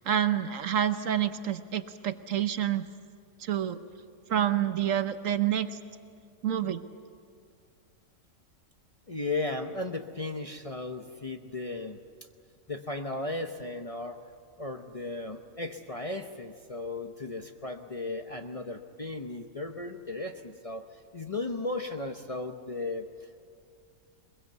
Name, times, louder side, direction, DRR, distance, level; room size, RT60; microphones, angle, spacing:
voice 1, 0.0-2.9 3.4-3.8 4.3-5.8 6.4-6.8, right 10 dB, 65° right, 10 dB, 1.2 m, -28 dB
voice 2, 9.1-12.0 12.7-14.2 14.6-23.4, left 2 dB, 30° left, 4 dB, 0.8 m, -36 dB
22.0 x 22.0 x 8.1 m, 2.2 s
omnidirectional pair, 1.5 m